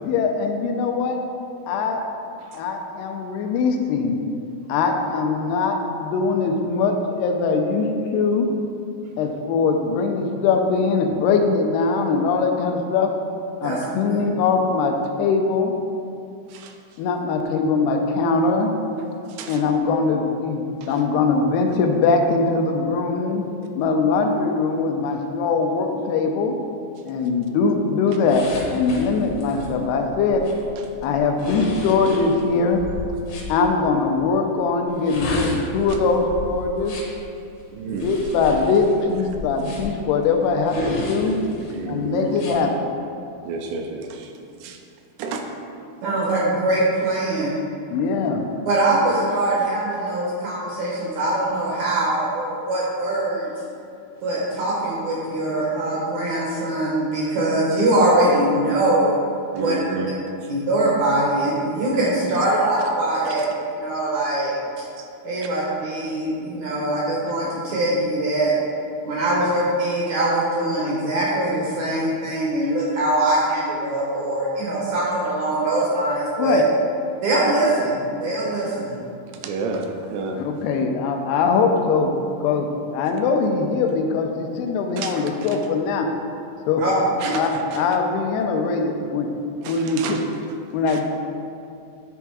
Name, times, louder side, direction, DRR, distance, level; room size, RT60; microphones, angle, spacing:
voice 1, 0.0-1.2 1.7-2.0 2.5-4.2 4.7-8.5 9.2-13.1 13.6-15.7 17.0-18.7 19.5-23.5 23.8-26.6 27.1-30.4 31.0-32.8 33.5-37.0 37.9-41.4 41.8-42.9 47.9-48.5 76.4-76.6 80.4-82.1 82.4-86.1 86.7-86.8 87.3-89.3 89.7-90.2 90.7-91.1, left 4 dB, 85° left, 4 dB, 2.6 m, -21 dB
voice 2, 19.3-19.6 20.8-21.0 35.9-36.0 37.7-38.4 41.7-42.3 43.4-44.3 44.6-44.8 45.2-45.5 48.2-48.3 59.5-60.1 63.4-63.5 65.0-65.1 79.3-80.5 85.0-85.6 87.2-87.8 89.6-90.3 90.9-91.0, right 4 dB, 90° right, 4 dB, 2.7 m, -31 dB
sound 1, 28.3-33.5 34.9-37.2 37.9-40.1 40.7-41.7 42.3-42.6, left 2 dB, 70° left, 1.9 m, -32 dB
voice 3, 46.0-47.5 48.7-53.5 54.2-59.1 59.6-59.8 60.5-64.5 65.2-68.5 69.1-76.6 77.2-79.0 86.8-86.9 87.2-87.4, right 1 dB, 70° right, -6 dB, 1.8 m, -22 dB
10.0 x 3.5 x 4.6 m, 2.5 s
omnidirectional pair, 4.7 m